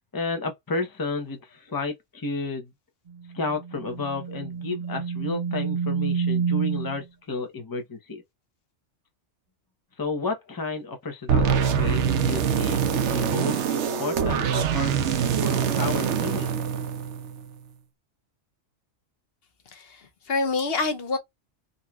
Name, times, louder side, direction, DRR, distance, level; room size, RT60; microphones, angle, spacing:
voice 1, 0.1-2.7 3.3-8.2 10.0-12.0 12.3-14.9 15.4-16.5, left 3 dB, 20° left, 0.8 m, -32 dB
sound 1, 3.1-7.0, right 6 dB, 45° right, 0.6 m, -29 dB
sound 2, 11.3-17.4, right 7 dB, 75° right, 1.0 m, -24 dB
voice 2, 19.7-21.2, left 3 dB, 60° left, 1.0 m, -27 dB
4.0 x 2.8 x 2.3 m
omnidirectional pair, 1.2 m